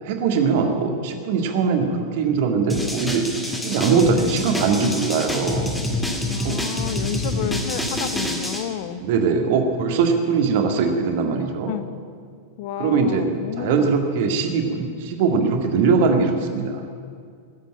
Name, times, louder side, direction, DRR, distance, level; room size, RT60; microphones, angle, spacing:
voice 1, 0.0-5.6 6.4-6.6 9.0-11.7 12.8-13.3 13.6-16.9, right 5 dB, 50° right, 4 dB, 1.9 m, -21 dB
sound 1, 2.7-8.6, left 1 dB, 5° left, 2.0 m, -26 dB
voice 2, 6.3-9.0 11.7-11.9 12.6-13.9, left 10 dB, 50° left, 13 dB, 0.8 m, -30 dB
17.0 x 8.2 x 9.0 m, 2.2 s
figure-of-eight pair, 90°, 0 cm